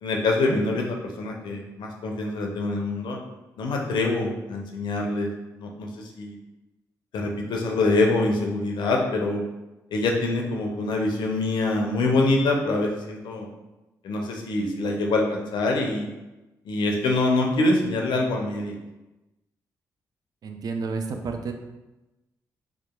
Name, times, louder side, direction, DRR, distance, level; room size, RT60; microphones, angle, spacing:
voice 1, 0.0-3.2 3.6-5.3 5.6-6.3 7.1-9.4 9.9-13.5 14.0-16.1 16.7-18.8, left 2 dB, 65° left, 1 dB, 0.5 m, -25 dB
voice 2, 20.4-21.5, right 4 dB, 50° right, 5 dB, 0.4 m, -30 dB
2.8 x 2.3 x 2.3 m, 1.0 s
hypercardioid pair, 45°, 8 cm